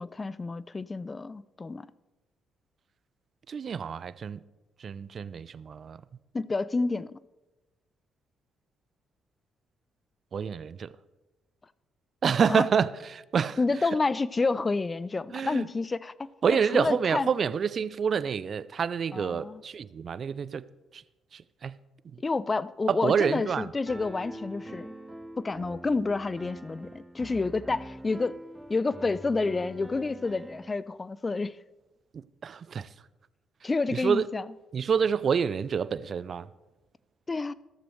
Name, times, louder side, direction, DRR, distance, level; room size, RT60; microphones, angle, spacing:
voice 1, 0.0-1.9 6.3-7.1 12.5-12.6 13.6-17.3 19.1-19.6 22.2-24.9 25.4-28.4 28.7-31.6 33.6-34.4 37.3-37.5, left 3 dB, 30° left, 0.5 m, -29 dB
voice 2, 3.5-4.4 4.8-6.0 10.3-10.9 12.2-13.9 15.3-15.7 16.4-20.7 20.9-21.0 21.3-21.7 22.0-22.2 22.9-23.7 32.1-32.9 33.6-34.3 34.7-36.5, right 6 dB, 50° right, 0.4 m, -28 dB
Piano, 23.9-30.7, right 1 dB, 15° right, 1.2 m, -44 dB
14.0 x 13.5 x 3.2 m
hypercardioid pair, 50°, 0 cm